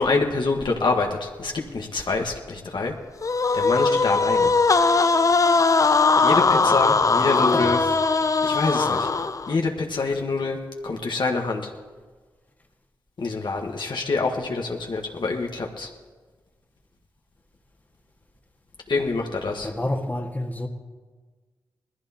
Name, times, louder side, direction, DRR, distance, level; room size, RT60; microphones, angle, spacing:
voice 1, 0.0-2.9 3.5-4.5 6.2-7.8 8.4-9.1 9.5-10.6 10.8-11.7 13.2-15.9 18.9-19.7, left 3 dB, 60° left, 1 dB, 1.4 m, -26 dB
sound 1, 3.2-9.6, left 4 dB, 40° left, 0.5 m, -20 dB
voice 2, 7.2-7.8 19.6-20.7, left 1 dB, 20° left, 1 dB, 1.7 m, -29 dB
19.5 x 14.5 x 2.9 m, 1.4 s
cardioid pair, 45°, 9 cm